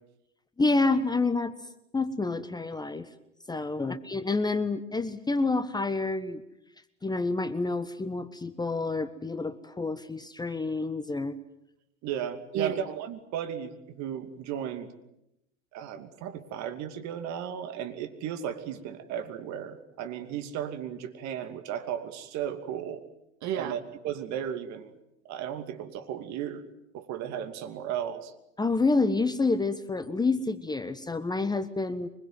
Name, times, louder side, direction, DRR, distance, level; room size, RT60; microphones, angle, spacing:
voice 1, 0.6-1.5 1.9-3.1 3.5-6.4 7.0-11.4 28.6-32.1, left 3 dB, 10° left, 12 dB, 1.3 m, -28 dB
voice 2, 12.0-14.9 15.7-23.0 23.4-24.9 25.3-26.6 26.9-28.3, right 9 dB, 45° right, 8 dB, 2.6 m, -34 dB
24.5 x 22.0 x 9.3 m, 0.83 s
hypercardioid pair, 90°, 38 cm